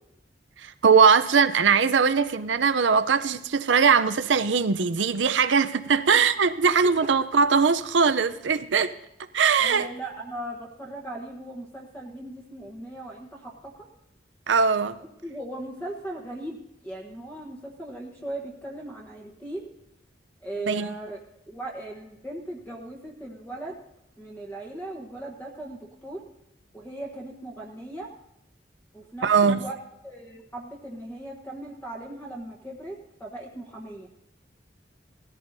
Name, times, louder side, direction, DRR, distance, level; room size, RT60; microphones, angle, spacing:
voice 1, 0.6-8.9 9.3-9.9 14.5-15.0 20.7-20.9 29.2-29.6, right 5 dB, 85° right, 0.6 m, -21 dB
voice 2, 9.6-13.9 15.2-19.7 20.4-21.2 21.5-23.8 24.2-26.2 26.7-28.1 28.9-29.7 30.0-34.1, right 1 dB, 10° left, 1.2 m, -38 dB
18.5 x 14.0 x 2.7 m
head